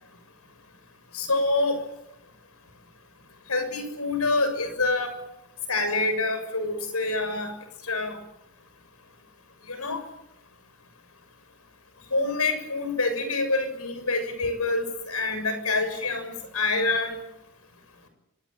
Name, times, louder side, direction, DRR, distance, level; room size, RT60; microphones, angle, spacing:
voice 1, 1.1-1.8 3.5-5.1 5.7-7.5 7.9-8.2 9.7-10.0 12.1-17.2, left 3 dB, 85° left, 9 dB, 6.8 m, -26 dB
25.5 x 19.0 x 8.9 m, 0.83 s
head